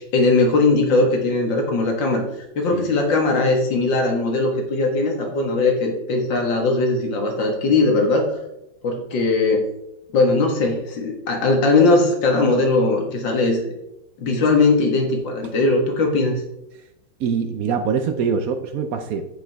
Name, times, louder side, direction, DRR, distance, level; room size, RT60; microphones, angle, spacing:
voice 1, 0.0-2.2 2.6-8.3 8.8-9.7 10.1-13.6 14.2-16.4, left 3 dB, 90° left, 2 dB, 2.2 m, -19 dB
voice 2, 17.2-19.3, right 6 dB, 65° right, 8 dB, 1.0 m, -23 dB
7.9 x 6.9 x 3.4 m, 0.85 s
omnidirectional pair, 2.0 m